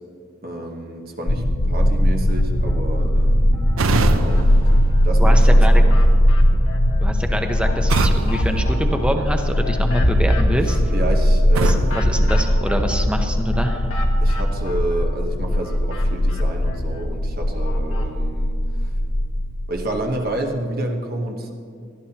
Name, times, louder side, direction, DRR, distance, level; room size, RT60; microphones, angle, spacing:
voice 1, 0.4-3.7 4.0-4.4 5.0-5.9 10.7-11.9 14.2-18.9 19.7-21.5, right 1 dB, 45° right, 2 dB, 1.1 m, -29 dB
sound 1, 1.3-20.1, equal, 50° left, 0.7 m, -19 dB
sound 2, 2.3-3.1 3.5-5.1 5.5-15.2 15.5-18.1, equal, 70° left, 1.7 m, -28 dB
sound 3, 3.8-5.7 7.9-9.6 11.5-13.2, right 3 dB, 80° right, 0.6 m, -26 dB
voice 2, 5.2-5.8 7.0-10.8 11.6-13.9, equal, 5° right, 5 dB, 0.8 m, -25 dB
19.5 x 13.0 x 2.9 m, 2.3 s
head